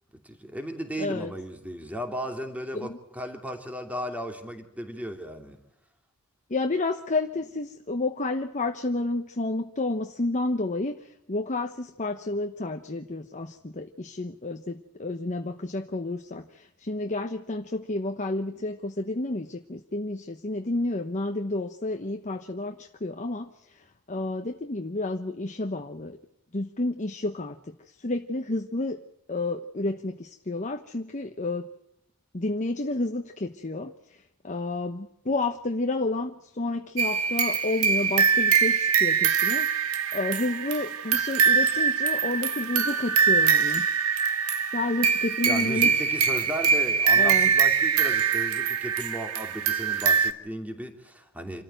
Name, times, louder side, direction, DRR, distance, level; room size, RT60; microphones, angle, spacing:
voice 1, 0.2-5.6 45.4-51.6, equal, 5° right, 5 dB, 2.8 m, -35 dB
voice 2, 1.0-1.3 2.7-3.0 6.5-26.2 26.5-29.0 29.3-31.7 32.3-43.9 44.7-45.9 47.1-47.5, left 2 dB, 35° left, 5 dB, 1.0 m, -30 dB
sound 1, 37.0-50.3, right 6 dB, 80° right, 1.6 m, -23 dB
27.0 x 14.0 x 9.0 m, 0.79 s
head